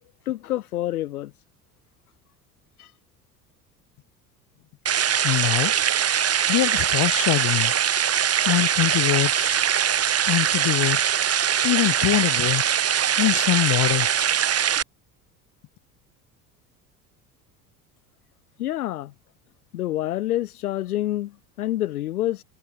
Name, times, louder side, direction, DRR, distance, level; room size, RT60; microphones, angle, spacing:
voice 1, 0.3-1.3 2.8-2.9 18.6-19.1 19.7-22.4, left 14 dB, 70° left, 1.6 m, -27 dB
sound 1, 4.9-14.8, right 9 dB, 30° right, 3.1 m, -22 dB
voice 2, 5.2-5.7 6.5-7.7 8.5-9.6 10.3-11.1 11.6-12.8 13.2-14.4, left 17 dB, 45° left, 3.4 m, -24 dB
figure-of-eight pair, 65°, 47 cm